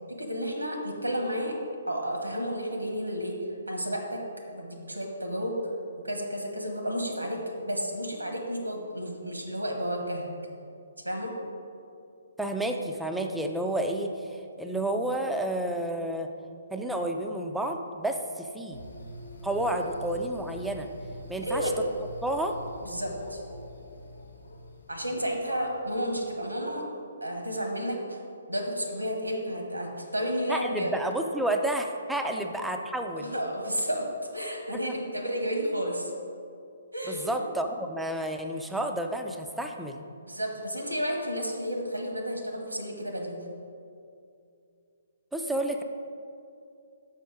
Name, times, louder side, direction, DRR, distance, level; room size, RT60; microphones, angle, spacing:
voice 1, 0.1-1.6 1.9-3.4 3.7-4.2 4.5-5.6 6.0-10.3 11.0-11.3 21.4-21.7 22.8-23.4 24.9-26.8 27.2-28.2 28.5-30.9 32.3-32.5 33.2-34.1 34.3-36.1 36.9-37.4 40.2-43.4, equal, 85° right, 2 dB, 1.2 m, -32 dB
voice 2, 12.4-16.3 16.7-18.8 19.4-20.9 21.3-21.7 22.2-22.6 30.5-33.4 34.8-34.9 37.1-40.0 45.3-45.8, right 1 dB, 5° right, 4 dB, 0.4 m, -30 dB
sound 1, 18.7-26.3, left 1 dB, 65° left, 0.9 m, -44 dB
5.8 x 5.5 x 4.7 m, 2.5 s
figure-of-eight pair, 130°, 0 cm